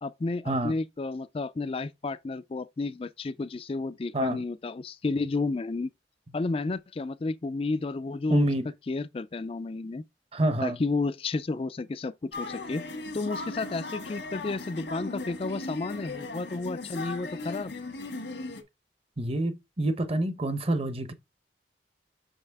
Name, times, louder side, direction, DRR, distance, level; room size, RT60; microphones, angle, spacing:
voice 1, 0.0-5.9 6.3-8.5 8.9-10.0 10.6-12.8 13.1-17.7, left 3 dB, 30° left, 0.4 m, -32 dB
voice 2, 4.1-4.4 8.3-8.7 10.3-10.8 19.2-21.1, right 1 dB, 35° right, 0.8 m, -27 dB
sound 1, 12.3-18.6, left 3 dB, 80° left, 1.5 m, -38 dB
6.3 x 5.4 x 3.5 m
head